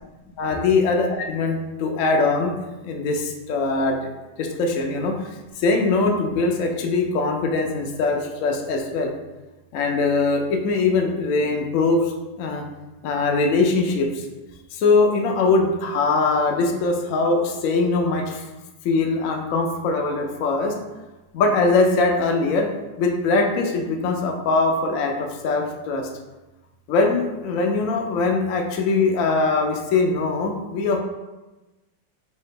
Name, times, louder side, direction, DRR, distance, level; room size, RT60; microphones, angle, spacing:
voice 1, 0.4-1.1 1.3-2.5 2.8-4.0 4.4-5.3 5.6-9.1 9.7-12.1 12.4-12.6 13.0-14.3 14.7-18.4 18.8-20.8 21.3-22.7 23.0-26.1 26.9-31.0, left 3 dB, 80° left, 3 dB, 0.7 m, -21 dB
3.4 x 2.8 x 4.4 m, 1.1 s
omnidirectional pair, 2.0 m